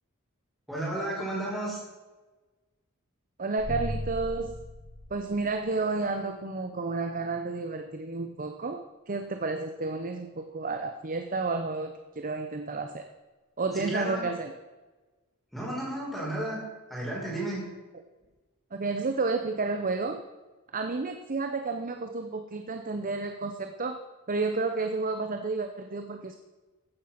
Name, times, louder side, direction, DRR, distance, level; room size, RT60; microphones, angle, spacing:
voice 1, 0.7-1.8 13.7-14.3 15.5-16.6 16.9-17.6, right 1 dB, ahead, -6 dB, 4.8 m, -32 dB
voice 2, 3.4-4.6 5.1-13.1 13.6-14.5 18.7-20.2 20.7-24.0 24.3-26.4, right 3 dB, 40° right, 7 dB, 0.9 m, -31 dB
sound 1, 3.6-5.8, left 1 dB, 50° left, 5.8 m, -37 dB
14.5 x 9.2 x 5.9 m, 1.2 s
head